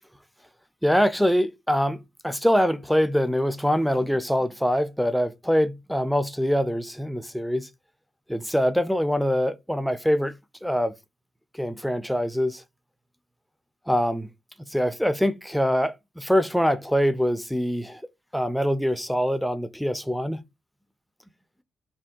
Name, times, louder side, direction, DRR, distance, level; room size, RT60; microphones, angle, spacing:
voice 1, 0.8-7.7 8.3-10.3 10.6-10.9 11.5-12.6 13.9-14.3 14.7-18.0 18.3-20.4, equal, ahead, 0.3 m, -24 dB
2.5 x 2.2 x 3.6 m
supercardioid pair, 65°, 0 cm